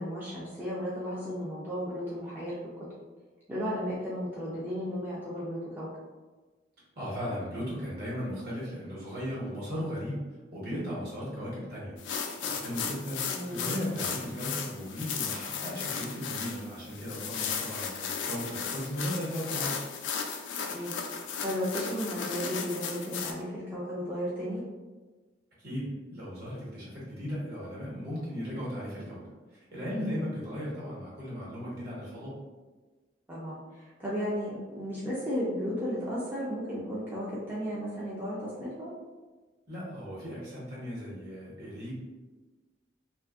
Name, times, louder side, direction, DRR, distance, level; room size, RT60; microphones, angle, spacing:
voice 1, 0.0-2.9 3.5-5.9 13.3-13.7 20.7-24.6 33.3-38.9, equal, 10° right, -9 dB, 0.4 m, -34 dB
voice 2, 7.0-10.2 10.5-13.2 13.5-19.8 25.6-29.2 29.5-32.4 39.7-41.9, equal, 55° right, -7 dB, 1.3 m, -36 dB
sound 1, 12.0-23.3, left 6 dB, 85° left, 0.3 m, -35 dB
2.6 x 2.5 x 2.4 m, 1.3 s
head